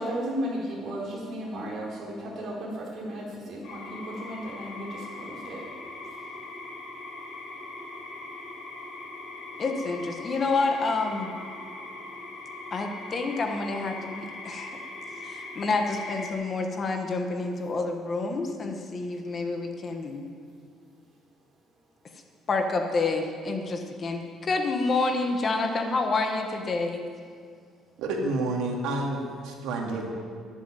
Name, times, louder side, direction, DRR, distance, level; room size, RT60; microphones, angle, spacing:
voice 1, 0.0-5.6, equal, 35° right, -4 dB, 4.5 m, -34 dB
sound 1, 3.6-16.3, left 2 dB, 55° left, 3.9 m, -41 dB
voice 2, 9.6-11.3 12.7-14.8 15.2-20.3 22.5-27.0, left 3 dB, 25° left, 4 dB, 1.2 m, -28 dB
voice 3, 28.0-30.1, right 2 dB, 85° right, 0 dB, 2.4 m, -29 dB
11.5 x 11.5 x 9.1 m, 2.1 s
cardioid pair, 175°, 0 cm